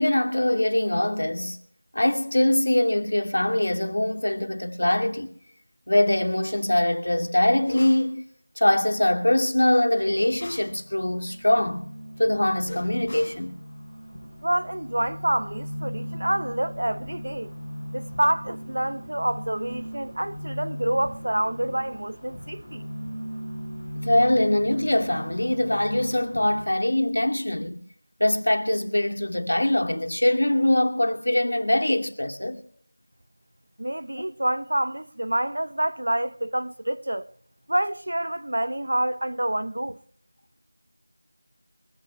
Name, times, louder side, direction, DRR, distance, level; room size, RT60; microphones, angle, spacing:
voice 1, 0.0-1.6 1.9-5.3 5.9-8.3 8.6-11.8 12.2-13.5 24.0-27.8 28.2-32.6, left 1 dB, 75° left, 2.3 m, -23 dB
sound 1, 7.6-8.1 10.1-10.8 12.6-13.4, left 1 dB, 20° left, 5.6 m, -40 dB
sound 2, 10.4-26.6, equal, 15° right, 6.9 m, -38 dB
voice 2, 14.4-17.5 17.9-22.9 33.8-37.3 37.7-40.0, right 1 dB, 65° right, 0.8 m, -27 dB
25.0 x 16.0 x 2.2 m
figure-of-eight pair, 180°, 0 cm